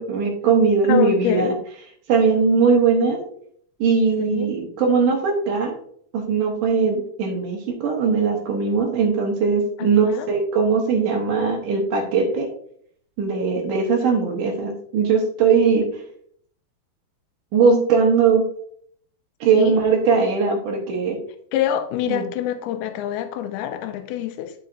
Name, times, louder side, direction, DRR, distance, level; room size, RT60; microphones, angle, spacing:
voice 1, 0.0-1.5 2.1-3.2 3.8-5.8 6.1-12.5 13.2-16.0 17.5-18.4 19.4-21.2 22.1-22.2, right 5 dB, 70° right, 2.3 m, -20 dB
voice 2, 0.9-1.5 4.2-4.5 9.8-10.3 19.5-19.8 21.5-24.5, left 10 dB, 85° left, 2.6 m, -25 dB
10.0 x 5.6 x 2.5 m
omnidirectional pair, 4.4 m